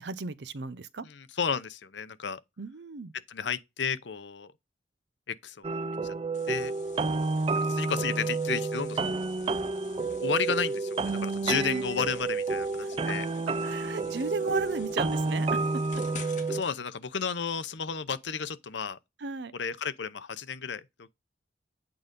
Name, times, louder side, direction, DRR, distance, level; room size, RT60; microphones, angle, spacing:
voice 1, 0.0-1.1 2.6-3.1 11.5-11.8 12.8-12.9 13.6-15.8 19.2-19.5, right 3 dB, 65° right, 0.6 m, -34 dB
voice 2, 1.0-2.4 3.3-4.5 5.3-5.7 6.0-6.2 6.5-6.7 7.5-9.2 10.2-13.3 16.5-19.0 19.5-21.1, left 6 dB, 70° left, 0.7 m, -33 dB
sound 1, 5.6-16.6, right 3 dB, 30° right, 0.4 m, -30 dB
sound 2, 6.3-16.7, left 4 dB, 45° left, 1.9 m, -49 dB
8.7 x 3.8 x 5.3 m
head